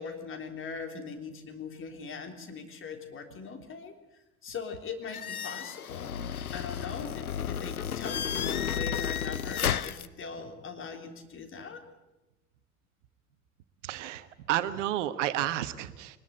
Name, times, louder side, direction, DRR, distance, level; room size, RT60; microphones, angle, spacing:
voice 1, 0.0-3.9 4.4-11.8, left 5 dB, 30° left, 4 dB, 3.5 m, -41 dB
sound 1, 5.1-10.1, left 8 dB, 80° left, 0.7 m, -32 dB
voice 2, 13.8-16.2, right 13 dB, 55° right, 13 dB, 1.2 m, -31 dB
23.5 x 20.0 x 8.0 m, 1.0 s
figure-of-eight pair, 75°, 43 cm